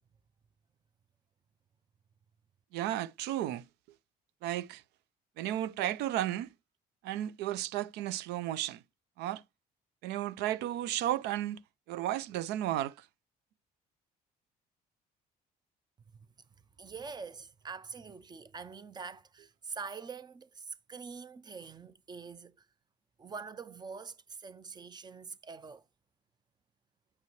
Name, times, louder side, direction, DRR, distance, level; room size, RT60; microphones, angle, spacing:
voice 1, 2.7-3.6 4.4-4.8 5.4-6.5 7.0-8.8 9.2-9.4 10.0-11.6 11.9-13.1, right 13 dB, 90° right, 0.4 m, -33 dB
voice 2, 16.8-22.6 23.2-25.8, right 5 dB, 25° right, 0.5 m, -45 dB
8.0 x 5.5 x 3.1 m
cardioid pair, 110°, 17 cm